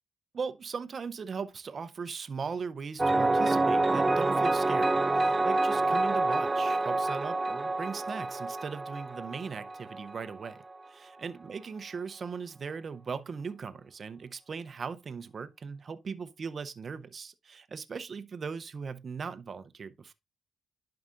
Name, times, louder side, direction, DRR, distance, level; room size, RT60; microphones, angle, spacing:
voice 1, 0.3-20.1, right 5 dB, 45° right, 0.7 m, -39 dB
sound 1, 3.0-10.5, right 2 dB, 20° right, 0.3 m, -27 dB
11.0 x 4.8 x 2.5 m
cardioid pair, 90°, 0 cm